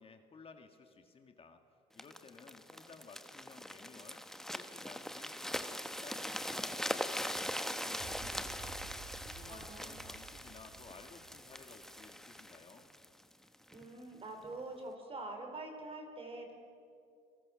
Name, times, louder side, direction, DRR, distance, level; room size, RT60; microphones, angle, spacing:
voice 1, 0.0-1.6 1.9-4.2 4.5-5.7 6.0-12.9, left 4 dB, 35° left, 6 dB, 1.8 m, -56 dB
sound 1, 2.0-13.8 14.4-14.6, left 1 dB, ahead, 1.1 m, -41 dB
sound 2, 8.0-12.3, right 5 dB, 55° right, 4.3 m, -52 dB
voice 2, 9.5-10.1 13.7-16.5, right 2 dB, 35° right, 4 dB, 4.8 m, -45 dB
28.5 x 22.5 x 6.4 m, 2.5 s
cardioid pair, 110°, 17 cm